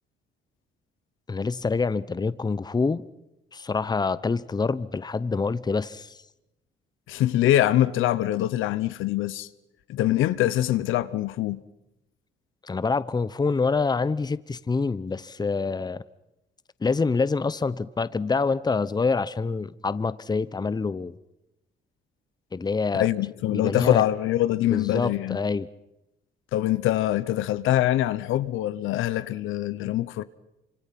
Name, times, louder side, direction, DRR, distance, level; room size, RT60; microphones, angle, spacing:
voice 1, 1.3-3.0 3.5-6.1 12.7-16.0 16.8-21.2 22.5-23.1 23.5-24.0 24.7-25.7, left 4 dB, 20° left, 0.8 m, -26 dB
voice 2, 7.1-9.5 9.9-11.6 22.9-25.4 26.5-30.2, left 13 dB, 90° left, 0.9 m, -24 dB
27.0 x 25.5 x 5.9 m
cardioid pair, 90°, 20 cm